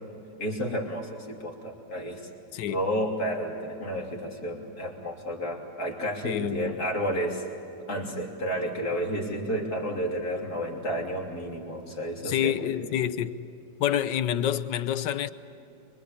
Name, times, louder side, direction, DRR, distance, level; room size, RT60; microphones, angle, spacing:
voice 1, 0.4-2.3 2.7-7.4 7.9-12.9, equal, 60° left, 3.6 m, -31 dB
voice 2, 6.2-6.8 12.2-13.4 13.8-15.3, left 10 dB, 85° left, 1.5 m, -28 dB
24.5 x 24.0 x 8.5 m
omnidirectional pair, 1.9 m